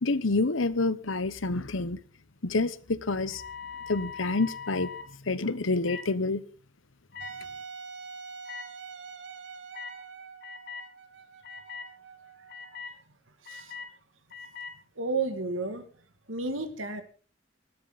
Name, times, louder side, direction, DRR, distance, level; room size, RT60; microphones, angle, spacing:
voice 1, 0.0-2.0 2.4-3.4 3.9-4.9 5.3-6.4, left 3 dB, 80° left, 1.0 m, -28 dB
sound 1, 3.2-5.1 5.8-6.1 7.1-7.3 8.4-8.6 9.7-9.9 10.4-10.9 11.4-11.9 12.5-12.9 13.4-13.9 14.3-14.7, left 5 dB, 50° left, 2.9 m, -41 dB
Wind instrument woodwind instrument, 7.2-12.8, right 5 dB, 65° right, 1.9 m, -45 dB
voice 2, 15.0-15.8 16.3-17.0, right 3 dB, 80° right, 2.4 m, -31 dB
19.5 x 14.0 x 4.1 m
head